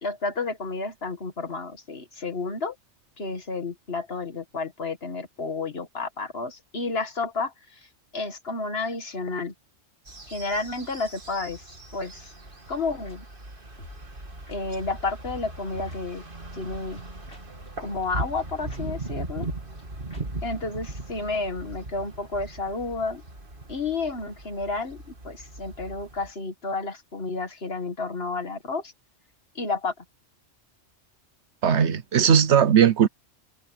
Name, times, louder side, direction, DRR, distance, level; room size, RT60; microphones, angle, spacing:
voice 1, 0.0-2.8 3.2-9.5 10.3-11.6 11.9-12.3 12.7-13.2 14.5-16.2 16.5-17.0 17.8-19.5 20.4-23.2 23.7-28.9 29.6-30.0, left 3 dB, 55° left, 2.1 m, -31 dB
sound 1, 10.1-26.3, right 2 dB, 45° right, 2.8 m, -39 dB
sound 2, 13.1-13.2 13.8-14.0 14.5-14.6 15.7-16.0 16.6-17.7 18.0-18.1 18.4-18.5 18.7-18.8 19.1-19.2 19.4-19.9 20.1-20.2 20.5-20.6 20.8-20.9, left 1 dB, 85° left, 6.8 m, -48 dB
voice 2, 31.6-33.1, right 8 dB, 75° right, 1.2 m, -18 dB
omnidirectional pair, 1.2 m